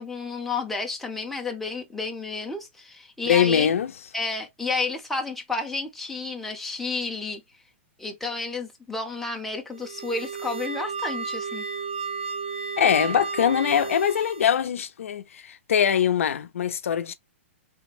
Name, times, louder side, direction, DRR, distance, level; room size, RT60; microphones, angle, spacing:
voice 1, 0.0-3.7 4.1-7.4 8.0-11.6, left 3 dB, 5° left, 0.5 m, -31 dB
voice 2, 3.3-3.9 12.8-17.1, left 8 dB, 85° left, 0.5 m, -22 dB
sound 1, 9.7-14.6, right 5 dB, 60° right, 1.0 m, -33 dB
3.3 x 2.1 x 3.2 m
hypercardioid pair, 160°, 7 cm